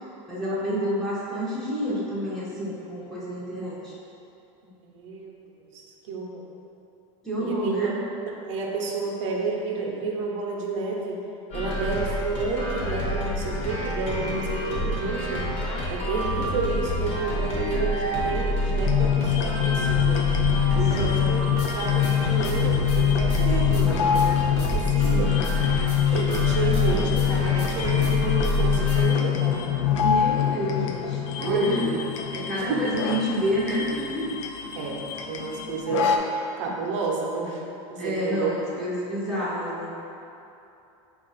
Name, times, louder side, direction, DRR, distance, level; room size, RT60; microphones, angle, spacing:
voice 1, 0.3-3.9 7.2-8.0 21.0-21.3 25.1-25.4 30.0-31.8 32.3-34.3 36.6-36.7 38.0-39.9, equal, 5° left, -9 dB, 0.5 m, -29 dB
voice 2, 4.8-5.4 5.7-6.5 7.4-8.0 8.3-11.2 11.5-15.5 15.9-20.3 20.7-21.5 21.7-25.4 26.1-29.7 31.4-32.0 32.5-32.9 34.8-37.6 37.9-38.5, right 4 dB, 75° right, -1 dB, 0.6 m, -30 dB
sound 1, 11.5-29.0, equal, 40° left, 0.8 m, -28 dB
sound 2, 18.8-36.2, left 10 dB, 75° left, 0.4 m, -24 dB
4.5 x 2.4 x 3.9 m, 2.8 s
supercardioid pair, 180°, 16 cm